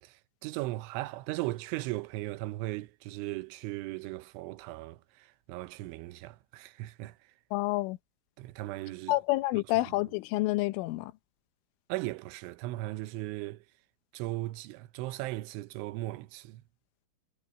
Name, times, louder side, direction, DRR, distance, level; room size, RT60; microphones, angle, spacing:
voice 1, 0.0-7.2 8.4-9.2 11.9-13.6 14.1-16.6, right 18 dB, 80° right, 3.1 m, -37 dB
voice 2, 7.5-8.0 9.1-11.1, left 18 dB, 85° left, 3.3 m, -28 dB
omnidirectional pair, 5.6 m